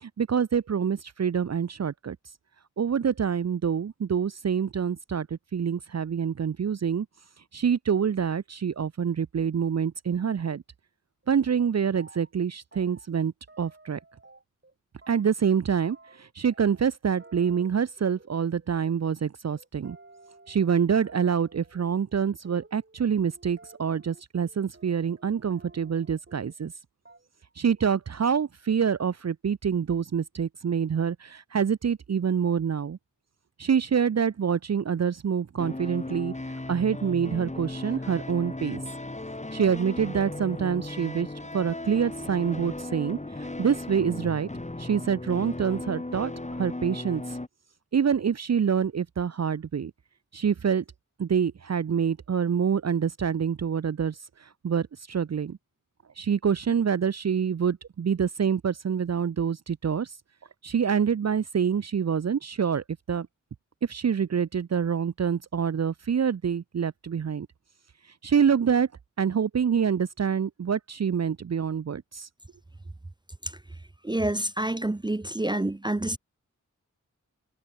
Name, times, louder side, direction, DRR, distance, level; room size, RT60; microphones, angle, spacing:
voice 1, 0.0-2.2 2.8-5.3 5.5-7.1 7.5-10.6 11.3-14.0 15.1-20.0 20.5-26.7 27.6-33.0 33.6-36.3 36.7-38.8 39.5-41.3 41.5-44.5 44.8-46.3 46.6-47.4 47.9-49.9 50.3-50.8 51.2-55.6 56.2-60.1 60.6-63.3 63.8-67.5 68.2-68.9 69.2-72.3, right 7 dB, 55° right, 0.6 m, -26 dB
sound 1, 11.2-11.3 11.6-12.4 12.7-14.7 15.0-26.8 27.1-27.5 27.8-28.2, right 2 dB, 35° right, 5.4 m, -54 dB
sound 2, 35.6-47.5, left 2 dB, 20° left, 2.2 m, -36 dB
voice 2, 74.0-76.2, right 1 dB, 15° right, 0.5 m, -28 dB
wide cardioid pair, 65°, 32 cm